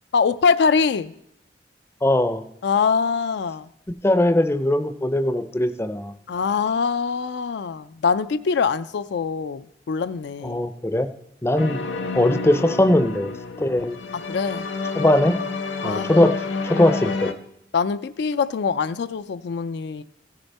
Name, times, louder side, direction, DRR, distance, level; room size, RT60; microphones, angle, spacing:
voice 1, 0.1-1.1 2.6-3.7 6.3-10.6 14.1-14.7 15.8-16.3 17.7-20.0, left 5 dB, 65° left, 12 dB, 0.4 m, -23 dB
voice 2, 2.0-2.4 4.0-6.1 10.4-11.1 11.4-11.8 12.1-13.3 13.6-14.0 14.9-15.4 15.8-16.3 16.6-17.3, left 1 dB, 15° left, 11 dB, 0.5 m, -20 dB
sound 1, 11.6-17.3, left 4 dB, 85° left, 0.9 m, -29 dB
16.0 x 6.8 x 4.1 m, 0.77 s
head